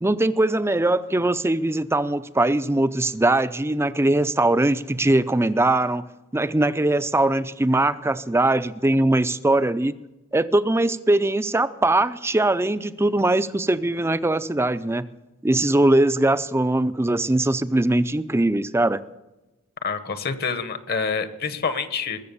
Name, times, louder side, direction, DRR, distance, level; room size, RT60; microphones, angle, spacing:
voice 1, 0.0-6.1 6.3-9.9 10.3-15.1 15.4-19.0, right 2 dB, 10° right, 0.5 m, -21 dB
voice 2, 19.8-22.2, left 5 dB, 45° left, 1.1 m, -27 dB
21.0 x 7.4 x 6.9 m
head